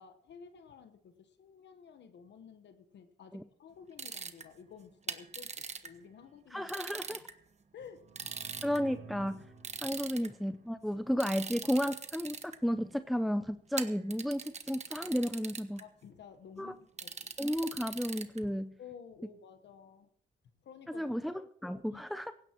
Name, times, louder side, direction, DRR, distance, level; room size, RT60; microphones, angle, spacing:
voice 1, 0.0-6.7 7.7-8.4 9.9-10.0 15.8-17.3 18.8-20.1 20.6-21.2 21.9-22.0, left 7 dB, 65° left, 9 dB, 1.2 m, -53 dB
sound 1, 4.0-4.4 5.1-5.9 6.7-7.3 8.2-8.8 9.6-10.3 11.2-12.6 13.8-15.8 17.0-18.4, right 5 dB, 35° right, 1.2 m, -41 dB
voice 2, 6.5-7.3 8.6-9.4 9.8-15.8 16.6-16.7 17.4-18.7 20.9-21.3 21.6-22.3, equal, ahead, 11 dB, 0.5 m, -33 dB
sound 2, 7.9-11.6, right 4 dB, 60° right, 3.9 m, -53 dB
17.5 x 16.0 x 3.0 m, 0.70 s
cardioid pair, 90°, 20 cm